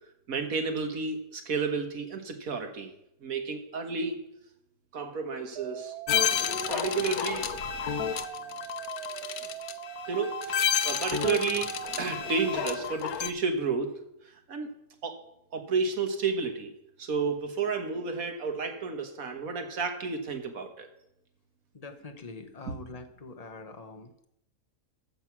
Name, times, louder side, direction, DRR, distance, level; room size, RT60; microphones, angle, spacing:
voice 1, 0.3-2.9 3.2-4.2 4.9-5.9 6.7-7.5 10.1-11.7 12.0-14.0 14.5-14.7 15.0-15.2 15.5-16.7 17.0-20.9 22.7-22.8, right 4 dB, 70° right, 6 dB, 1.8 m, -31 dB
sound 1, 5.6-12.9, right 11 dB, 85° right, 1.1 m, -41 dB
sound 2, 6.1-13.3, left 9 dB, 75° left, 1.2 m, -31 dB
voice 2, 21.7-24.3, left 3 dB, 30° left, 5 dB, 1.1 m, -44 dB
14.5 x 6.5 x 6.1 m, 0.81 s
omnidirectional pair, 1.6 m